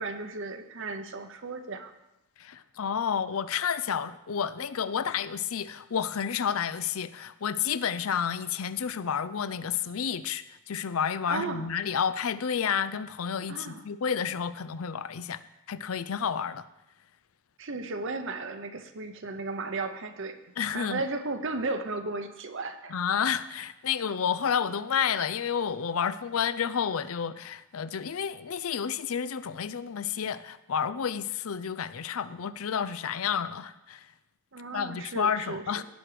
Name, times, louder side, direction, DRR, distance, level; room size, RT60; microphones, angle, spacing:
voice 1, 0.0-1.9 11.3-11.7 13.5-13.8 17.6-20.4 20.7-23.0 34.5-35.9, right 3 dB, 60° right, 7 dB, 0.8 m, -35 dB
voice 2, 2.4-15.4 15.7-16.6 20.6-21.0 22.9-34.1 34.7-35.8, left 7 dB, 80° left, 14 dB, 0.5 m, -30 dB
17.5 x 6.1 x 5.0 m, 0.93 s
head